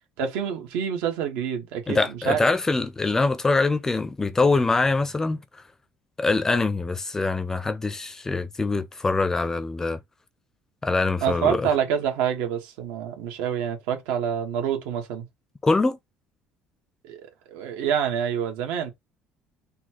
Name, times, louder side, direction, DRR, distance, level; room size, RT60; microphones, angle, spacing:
voice 1, 0.2-2.4 11.2-15.2 17.0-18.9, right 8 dB, 90° right, 1.3 m, -27 dB
voice 2, 1.9-5.4 6.2-10.0 10.8-11.7 15.6-16.0, left 3 dB, 15° left, 0.4 m, -23 dB
4.1 x 2.3 x 4.4 m
cardioid pair, 150°, 4 cm